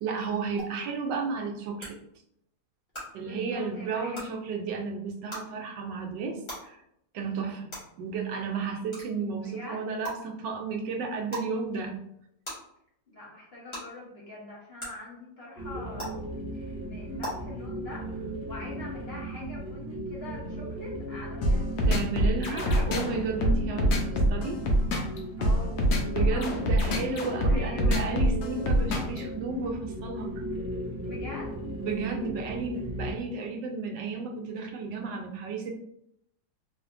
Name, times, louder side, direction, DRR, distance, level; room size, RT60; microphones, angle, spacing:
voice 1, 0.0-2.0 3.1-6.8 7.1-7.7 8.0-12.0 21.9-24.6 26.1-30.4 31.8-35.7, right 4 dB, 75° right, 3 dB, 1.2 m, -33 dB
sound 1, 0.6-0.7 1.8-1.9 2.9-3.0 4.1-4.2 5.3-5.4 6.5-6.6 7.7-7.8 8.9-9.0 10.0-10.1 11.3-11.5 12.4-12.5 13.7-13.8 14.8-14.9 16.0-16.1 17.2-17.3, right 1 dB, 15° left, 1.2 m, -36 dB
voice 2, 3.2-4.3 4.6-4.7 9.4-9.9 13.1-22.2 22.5-23.5 25.4-26.7 27.5-28.2 31.0-31.8, left 2 dB, 50° left, -5 dB, 0.8 m, -44 dB
sound 2, 15.6-33.1, right 1 dB, 5° right, 0.6 m, -37 dB
sound 3, 21.4-29.2, equal, 65° left, 1.1 m, -24 dB
3.4 x 3.1 x 2.5 m, 0.76 s
omnidirectional pair, 2.0 m